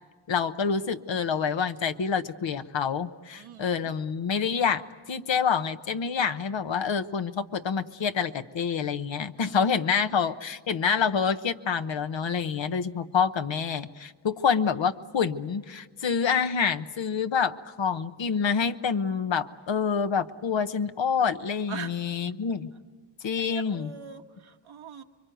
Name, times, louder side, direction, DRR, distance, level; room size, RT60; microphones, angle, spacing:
voice 1, 0.3-4.8 5.1-22.7 23.2-23.9, left 6 dB, 65° left, 10 dB, 1.1 m, -27 dB
voice 2, 3.4-3.7 9.4-9.6 21.7-21.9 23.4-25.0, right 7 dB, 80° right, 4 dB, 1.5 m, -41 dB
25.5 x 23.0 x 9.2 m, 1.4 s
cardioid pair, 50°, 47 cm